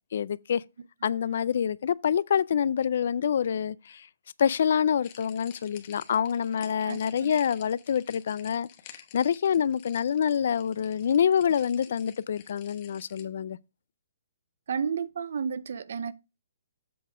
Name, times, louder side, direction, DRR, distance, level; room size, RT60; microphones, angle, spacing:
voice 1, 0.1-0.6 1.0-4.1 4.4-8.7 9.1-13.6, left 8 dB, 60° left, 0.3 m, -26 dB
voice 2, 1.0-1.4 6.8-7.4 14.7-16.1, right 6 dB, 65° right, 0.5 m, -33 dB
sound 1, 5.0-13.2, left 10 dB, 30° left, 1.0 m, -51 dB
7.7 x 4.1 x 5.0 m
hypercardioid pair, 160°, 0 cm